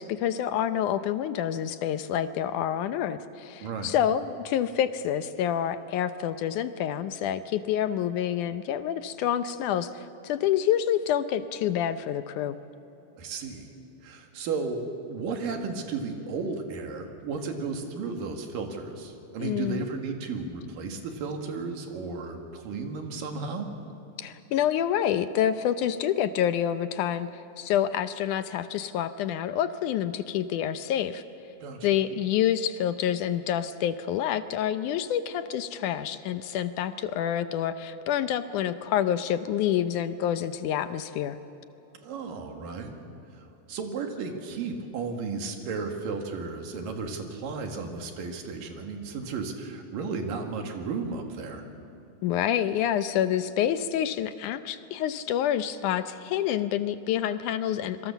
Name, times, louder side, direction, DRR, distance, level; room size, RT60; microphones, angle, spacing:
voice 1, 0.0-12.6 19.4-19.8 24.2-31.2 31.8-41.4 52.2-58.1, left 10 dB, 75° left, 11 dB, 2.1 m, -27 dB
voice 2, 3.6-3.9 13.2-13.7 14.0-14.8 15.1-23.7 31.6-31.9 42.0-42.9 43.3-51.6, right 4 dB, 90° right, 4 dB, 3.7 m, -34 dB
26.5 x 23.0 x 7.1 m, 3.0 s
omnidirectional pair, 3.8 m